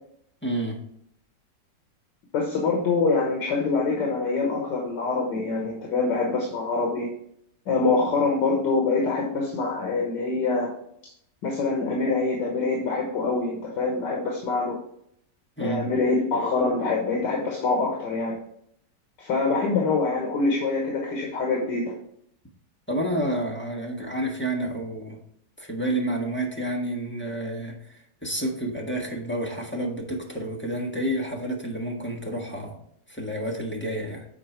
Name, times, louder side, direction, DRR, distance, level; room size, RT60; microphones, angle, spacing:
voice 1, 0.4-0.8 15.6-15.9 22.9-25.2 25.6-32.8 33.1-34.3, right 1 dB, 10° left, -2 dB, 1.1 m, -29 dB
voice 2, 2.3-7.1 7.7-10.7 11.0-11.1 11.4-14.8 15.6-18.4 19.2-21.9, left 3 dB, 80° left, -1 dB, 1.9 m, -25 dB
7.4 x 4.4 x 4.4 m, 0.70 s
omnidirectional pair, 1.9 m